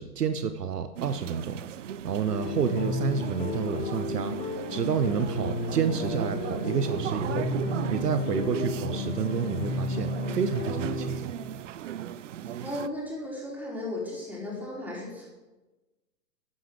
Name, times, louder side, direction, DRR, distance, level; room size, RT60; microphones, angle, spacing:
voice 1, 0.0-1.6 2.0-11.3, right 7 dB, 70° right, 10 dB, 1.0 m, -30 dB
sound 1, 1.0-12.9, right 10 dB, 50° right, 0.6 m, -37 dB
sound 2, 2.2-11.2, left 3 dB, 15° left, 1.8 m, -33 dB
voice 2, 12.4-15.3, left 1 dB, 5° right, -6 dB, 4.8 m, -36 dB
13.0 x 9.7 x 4.9 m, 1.1 s
figure-of-eight pair, 115°, 50 cm